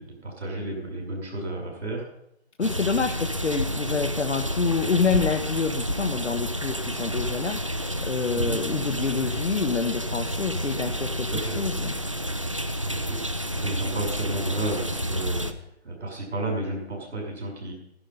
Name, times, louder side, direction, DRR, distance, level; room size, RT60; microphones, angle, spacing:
voice 1, 0.0-2.0 8.3-8.6 11.3-11.6 12.8-15.4 15.8-17.7, right 2 dB, 80° right, 0 dB, 6.0 m, -32 dB
voice 2, 2.6-12.0, left 5 dB, 85° left, 5 dB, 1.2 m, -27 dB
sound 1, 2.6-15.5, equal, 30° right, 0.4 m, -30 dB
11.5 x 11.5 x 5.4 m, 0.77 s
hypercardioid pair, 170°, 34 cm